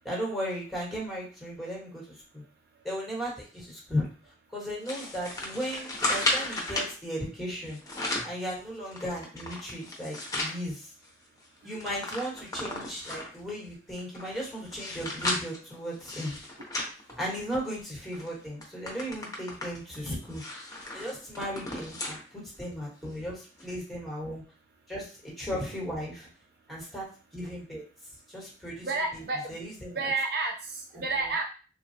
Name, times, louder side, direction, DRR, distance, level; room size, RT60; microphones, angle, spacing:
voice 1, 0.0-2.0 2.3-2.4 2.8-4.1 4.5-7.8 8.2-10.9 11.6-16.4 17.2-20.4 20.9-24.4 24.9-26.3 26.7-27.1 27.3-27.8 28.3-28.9 29.1-29.2 29.5-30.1, equal, ahead, -5 dB, 1.2 m, -36 dB
sound 1, 4.9-6.9 7.7-8.4 8.9-10.6 11.0-11.1 11.4-13.4 14.0-17.7 18.1-18.3 18.6-22.2 22.6-22.7 23.6-23.7, left 2 dB, 20° left, 0.7 m, -34 dB
voice 2, 28.8-29.6 29.9-31.4, right 3 dB, 65° right, 2 dB, 0.5 m, -31 dB
3.2 x 2.2 x 2.7 m, 0.37 s
head